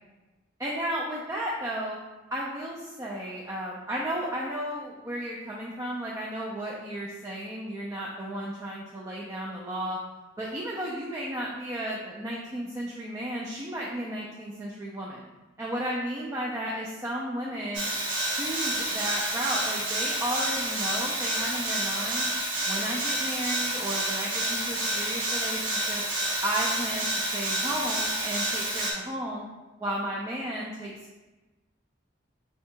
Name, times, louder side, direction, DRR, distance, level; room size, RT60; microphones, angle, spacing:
voice 1, 0.6-2.0 2.3-10.0 10.4-15.3 15.6-17.9 18.3-22.3 22.7-26.0 26.4-29.4 29.8-31.2, right 1 dB, 15° right, -4 dB, 0.4 m, -33 dB
sound 1, 17.7-28.9, right 1 dB, 75° right, 1.0 m, -29 dB
3.6 x 2.2 x 4.3 m, 1.2 s
head